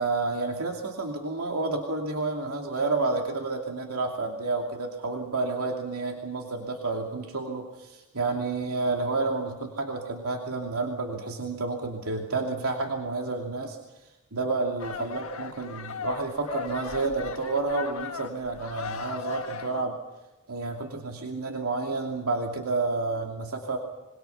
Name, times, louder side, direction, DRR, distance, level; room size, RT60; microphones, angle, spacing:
voice 1, 0.0-13.8 14.3-20.0 20.5-23.8, right 3 dB, 85° right, 1 dB, 2.7 m, -30 dB
sound 1, 14.8-19.8, left 6 dB, 75° left, 1.4 m, -37 dB
26.0 x 24.0 x 5.8 m, 1.1 s
head